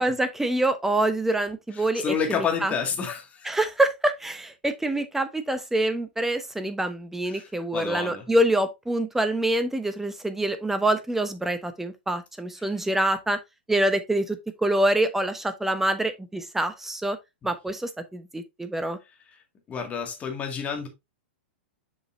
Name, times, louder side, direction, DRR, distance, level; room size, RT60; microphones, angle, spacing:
voice 1, 0.0-2.7 3.4-13.4 13.7-17.2 17.4-19.0, right 1 dB, 5° right, 0.9 m, -26 dB
voice 2, 1.7-3.5 7.3-8.3 12.6-12.8 17.4-17.5 19.7-20.9, left 6 dB, 25° left, 2.1 m, -30 dB
7.4 x 5.2 x 2.7 m
figure-of-eight pair, 105°, 6 cm